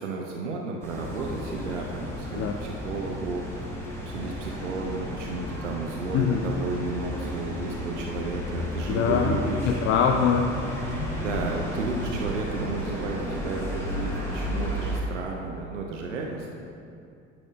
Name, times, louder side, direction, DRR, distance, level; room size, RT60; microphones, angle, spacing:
voice 1, 0.0-3.6 4.1-9.7 11.2-16.6, right 3 dB, 75° right, 0 dB, 0.7 m, -33 dB
sound 1, 0.8-15.0, equal, 5° left, 1.6 m, -33 dB
voice 2, 8.9-10.5, left 7 dB, 35° left, 3 dB, 0.4 m, -23 dB
9.8 x 6.0 x 2.5 m, 2.5 s
figure-of-eight pair, 65°, 37 cm